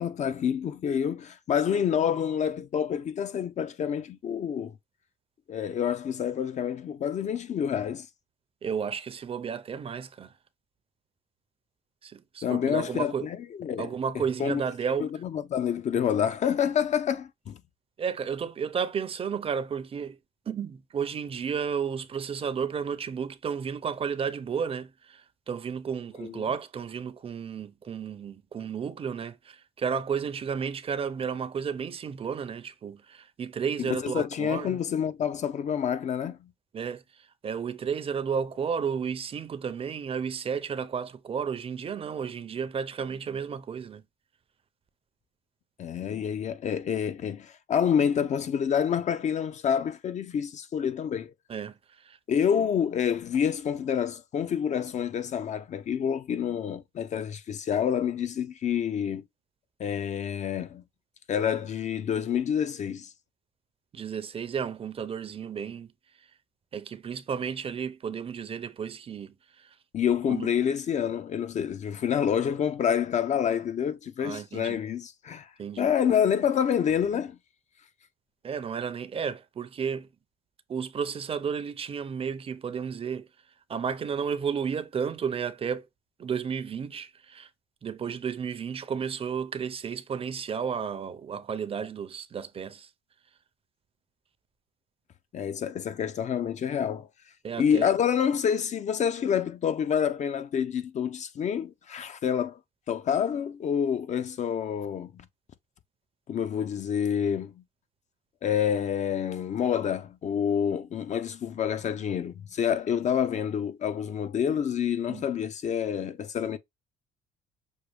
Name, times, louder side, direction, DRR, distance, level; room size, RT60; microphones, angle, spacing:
voice 1, 0.0-4.7 5.5-8.1 12.4-13.9 14.4-14.6 15.0-17.6 26.2-26.4 33.9-36.5 45.8-51.3 52.3-59.2 59.8-60.8 61.3-63.1 69.9-75.5 75.8-77.4 95.3-97.1 97.6-102.6 102.9-105.3 106.3-107.5 108.4-116.6, left 8 dB, 45° left, 0.6 m, -28 dB
voice 2, 8.6-10.3 12.0-13.3 13.8-15.1 18.0-20.2 20.5-34.8 36.7-37.0 37.4-44.0 51.5-52.2 63.9-65.9 66.7-69.7 70.3-70.5 74.2-74.8 75.6-75.9 78.4-80.1 80.7-83.3 83.7-85.9 86.2-87.5 87.8-92.9 97.4-97.9 115.1-115.3, right 7 dB, 35° right, 0.6 m, -32 dB
6.4 x 2.3 x 3.4 m
cardioid pair, 110°, 17 cm